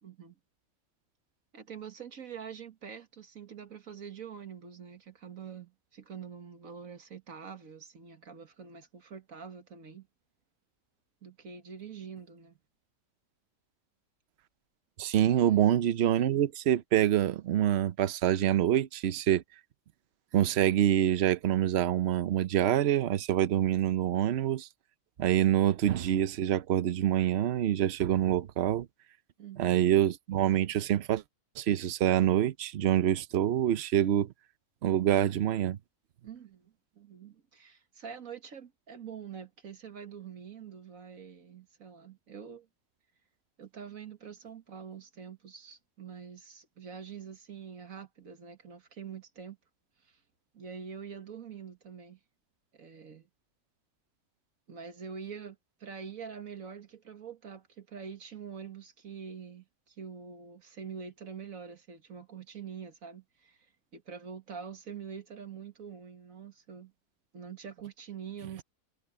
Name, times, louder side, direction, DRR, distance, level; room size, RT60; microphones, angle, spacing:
voice 1, 0.0-0.4 1.5-10.1 11.2-12.6 15.2-15.7 29.4-29.8 36.2-42.7 43.6-49.6 50.0-50.2 50.5-52.2 52.7-53.3 54.7-63.7 63.9-66.9 67.3-68.6, right 7 dB, 75° right, 2.2 m, -45 dB
voice 2, 15.0-19.4 20.3-24.7 25.2-28.9 29.6-31.2 31.6-34.3 34.8-35.8, right 11 dB, 55° right, 0.9 m, -26 dB
omnidirectional pair, 1.5 m